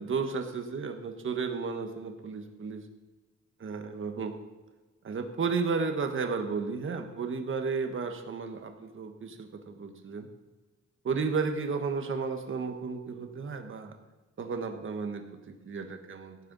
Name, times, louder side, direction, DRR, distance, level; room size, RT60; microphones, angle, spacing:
voice 1, 0.0-2.8 3.6-4.3 5.0-10.3 11.0-13.9 14.4-16.4, right 5 dB, 45° right, 6 dB, 1.3 m, -33 dB
16.5 x 9.1 x 4.1 m, 1.3 s
wide cardioid pair, 145°, 29 cm